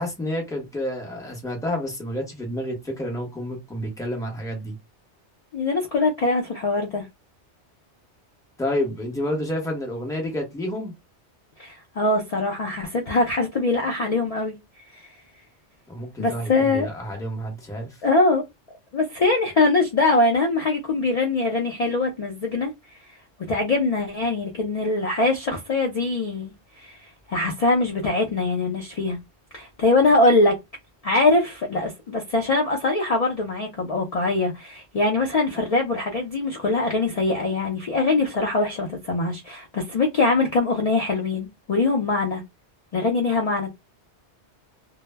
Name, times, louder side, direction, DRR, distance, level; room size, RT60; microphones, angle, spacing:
voice 1, 0.0-4.7 8.6-10.9 15.9-17.9, left 1 dB, 5° left, 0.6 m, -29 dB
voice 2, 5.5-7.1 11.6-14.6 14.9-15.1 16.2-16.9 18.0-18.4 18.9-22.7 23.5-29.2 29.5-30.5 31.0-42.4 42.9-43.7, left 2 dB, 60° left, 0.4 m, -22 dB
2.0 x 2.0 x 3.2 m
omnidirectional pair, 1.2 m